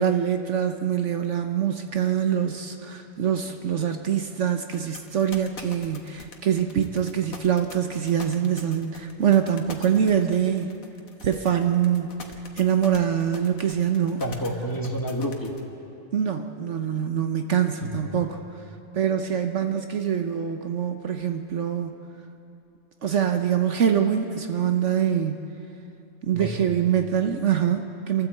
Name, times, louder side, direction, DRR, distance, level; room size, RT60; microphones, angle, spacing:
voice 1, 0.0-10.7 11.2-12.1 12.6-14.2 16.1-18.4 18.9-22.0 23.0-25.4 26.2-28.3, right 9 dB, 60° right, 6 dB, 1.1 m, -24 dB
sound 1, 4.7-15.6, left 4 dB, 75° left, 1.9 m, -43 dB
voice 2, 14.2-15.5 17.8-18.4 26.3-26.9, equal, 15° left, 0 dB, 2.0 m, -30 dB
27.0 x 13.5 x 8.0 m, 2.8 s
omnidirectional pair, 1.4 m